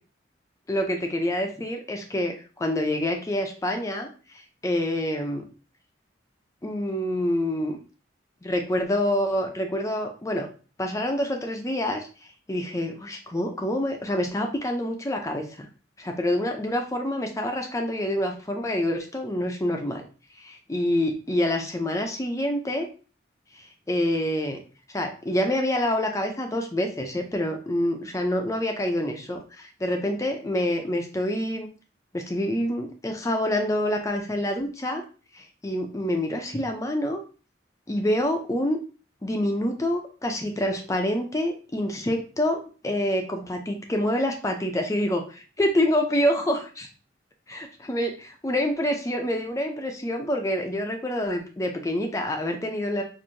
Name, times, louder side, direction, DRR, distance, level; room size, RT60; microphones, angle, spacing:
voice 1, 0.7-4.1 4.3-5.5 6.6-7.8 8.4-10.5 10.8-12.1 12.5-15.7 16.0-20.0 20.4-22.9 23.6-24.6 24.9-31.7 32.1-35.0 35.3-37.2 37.9-38.8 39.2-46.9 47.5-53.0, left 1 dB, 15° left, 3 dB, 0.5 m, -27 dB
4.5 x 2.6 x 2.6 m, 0.36 s
head